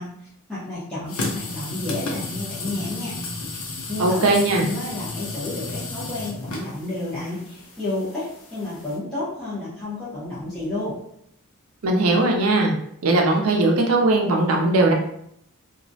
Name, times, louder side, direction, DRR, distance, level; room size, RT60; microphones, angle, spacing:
voice 1, 0.0-3.2 3.9-11.0, left 2 dB, 5° left, -12 dB, 0.6 m, -31 dB
sound 1, 1.1-9.0, left 3 dB, 65° left, 0.5 m, -33 dB
voice 2, 4.0-4.7 11.8-12.7 13.0-14.9, right 2 dB, 75° right, 1 dB, 0.5 m, -19 dB
2.3 x 2.0 x 2.6 m, 0.73 s
head